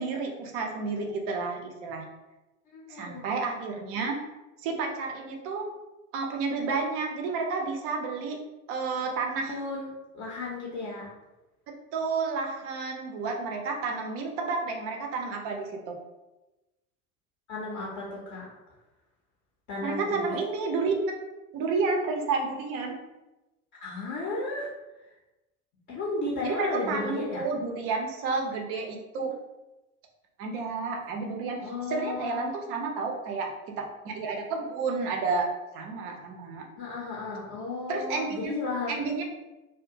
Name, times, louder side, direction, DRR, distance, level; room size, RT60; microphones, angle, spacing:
voice 1, 0.0-2.1 2.9-4.2 4.6-5.7 6.1-8.4 8.7-9.5 11.9-16.0 19.8-20.9 21.5-23.0 26.4-29.3 30.4-31.6 31.9-35.5 35.7-36.6 37.9-38.5 38.9-39.2, right 4 dB, 35° right, 2 dB, 0.5 m, -31 dB
voice 2, 2.7-3.2 9.4-9.9 10.1-11.1 17.5-18.4 19.7-20.4 23.8-24.7 25.9-27.4 31.6-32.5 36.8-39.0, left 3 dB, 30° left, -4 dB, 0.6 m, -34 dB
2.4 x 2.2 x 2.7 m, 1.0 s
figure-of-eight pair, 75°, 43 cm